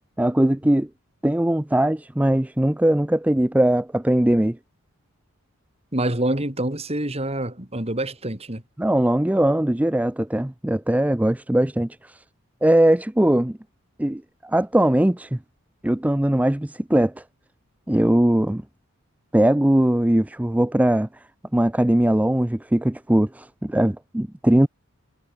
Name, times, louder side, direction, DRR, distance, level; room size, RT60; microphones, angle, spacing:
voice 1, 0.2-0.9 1.2-4.6 8.8-12.2 12.6-13.6 14.0-15.4 15.8-17.2 17.9-18.6 19.3-21.1 21.5-24.7, right 1 dB, 5° right, 0.4 m, -20 dB
voice 2, 5.9-8.6, right 1 dB, 30° right, 3.0 m, -26 dB
head